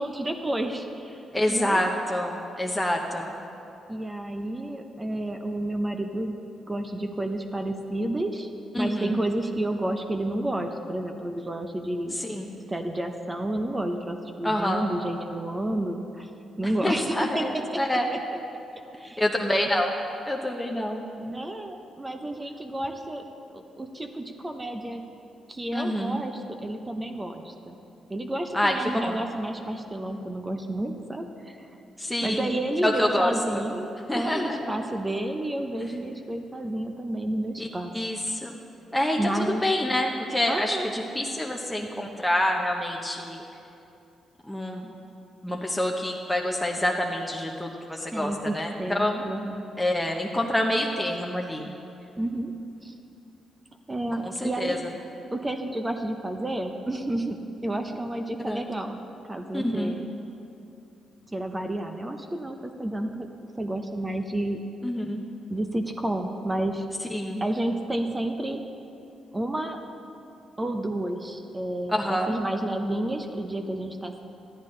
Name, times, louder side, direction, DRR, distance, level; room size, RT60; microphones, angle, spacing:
voice 1, 0.0-1.8 3.9-6.4 6.6-8.5 8.8-12.2 12.7-16.3 16.6-17.8 18.1-18.2 19.0-19.2 21.2-23.2 23.5-25.0 25.5-27.8 28.1-31.7 32.2-37.9 39.2-39.6 40.5-40.9 48.1-49.6 52.2-52.5 52.8-52.9 53.9-54.8 55.3-59.0 59.3-60.1 61.3-63.3 63.6-64.6 65.5-66.9 67.4-68.6 69.3-69.8 70.6-74.2, right 1 dB, 20° right, 5 dB, 0.8 m, -30 dB
voice 2, 1.3-3.3 8.7-9.2 12.1-12.5 14.4-14.8 16.8-18.0 19.2-19.9 20.3-21.0 25.7-26.2 28.5-29.2 32.0-32.5 32.8-33.6 34.1-34.8 37.6-37.7 37.9-38.6 38.9-43.4 44.4-44.9 45.4-49.2 49.8-51.8 54.2-54.8 58.5-58.7 59.5-60.0 64.8-65.2 67.1-67.4 71.9-72.3, left 1 dB, 10° left, 0 dB, 0.9 m, -27 dB
12.5 x 10.5 x 3.3 m, 2.7 s
hypercardioid pair, 50°, 0 cm